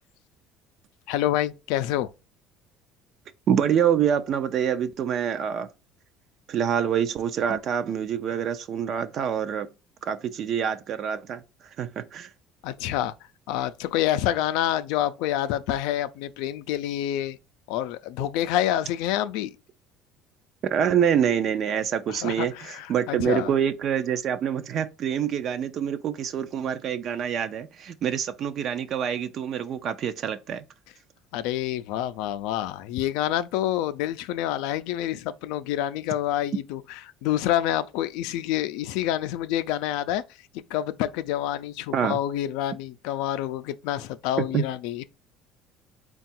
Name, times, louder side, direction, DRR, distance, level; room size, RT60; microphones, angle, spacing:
voice 1, 1.1-2.1 12.6-13.1 13.5-17.4 17.7-19.6 22.1-23.5 31.3-40.2 40.5-45.0, left 12 dB, 85° left, 0.4 m, -27 dB
voice 2, 3.5-5.7 6.5-9.7 10.0-11.4 11.8-12.3 20.6-30.6 41.9-42.2 44.5-44.6, right 8 dB, 50° right, 0.4 m, -26 dB
3.7 x 2.3 x 4.2 m
cardioid pair, 135°, 0 cm